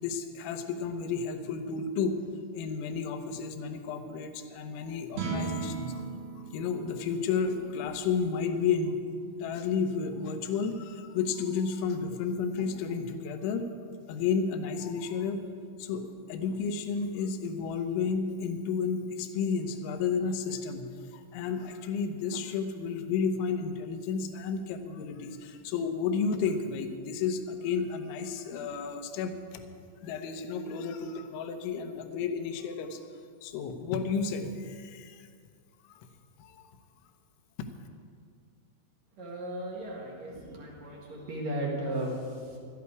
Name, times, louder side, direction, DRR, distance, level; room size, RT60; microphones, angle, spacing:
voice 1, 0.0-6.0 6.5-9.0 9.4-13.7 14.1-15.4 15.8-29.6 30.0-33.0 33.4-35.3 35.8-36.1 36.4-36.6 37.6-37.7, left 5 dB, 75° left, 7 dB, 3.2 m, -32 dB
sound 1, 5.1-11.5, right 4 dB, 85° right, 4.8 m, -40 dB
voice 2, 39.2-42.6, right 1 dB, 50° right, -3 dB, 2.4 m, -35 dB
17.0 x 13.0 x 4.8 m, 2.1 s
omnidirectional pair, 5.7 m